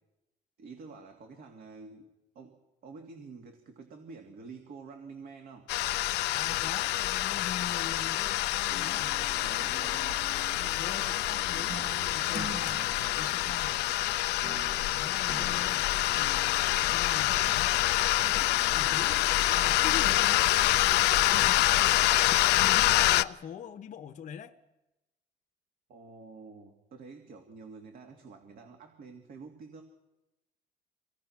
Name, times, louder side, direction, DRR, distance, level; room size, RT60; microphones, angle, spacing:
voice 1, 0.6-5.7 9.4-10.3 25.9-29.8, right 4 dB, 60° right, 4 dB, 2.5 m, -48 dB
sound 1, 5.7-23.2, left 16 dB, 80° left, 0.6 m, -26 dB
voice 2, 6.3-9.2 10.8-13.8 14.9-15.9 16.2-17.7 18.3-20.4 21.1-21.9 22.5-24.5, left 8 dB, 50° left, 6 dB, 0.9 m, -43 dB
sound 2, 8.7-22.1, right 3 dB, 90° right, 5.4 m, -49 dB
sound 3, 11.7-14.0 14.4-16.7, right 5 dB, 35° right, 0.7 m, -46 dB
25.5 x 18.0 x 6.0 m, 0.99 s
cardioid pair, 110°, 17 cm